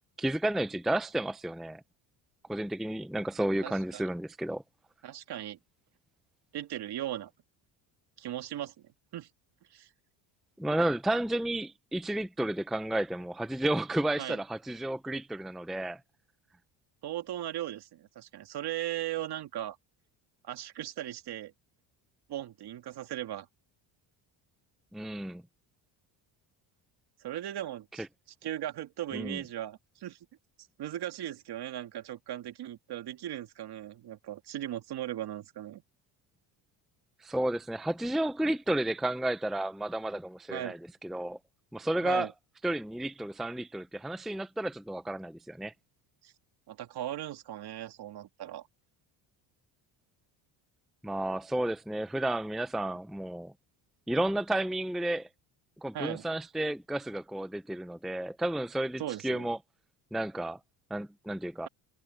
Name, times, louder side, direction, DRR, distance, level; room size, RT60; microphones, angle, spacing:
voice 1, 0.2-1.8 2.5-4.6 10.6-16.0 24.9-25.4 28.0-28.1 29.1-29.4 37.2-41.4 41.7-42.3 42.6-45.7 51.0-53.5 54.1-55.3 55.8-59.6 60.1-60.6 60.9-61.7, right 1 dB, ahead, 0.6 m, -32 dB
voice 2, 3.6-4.1 5.0-5.6 6.5-7.3 8.2-8.7 9.1-9.3 9.7-9.9 14.2-14.4 17.0-19.8 20.4-21.5 22.3-23.5 27.2-28.0 28.4-30.2 30.8-35.8 40.5-40.8 42.0-42.3 46.2-46.3 46.7-48.7 55.9-56.2 59.0-59.5, right 12 dB, 55° right, 2.5 m, -38 dB
cardioid pair, 115°, 45 cm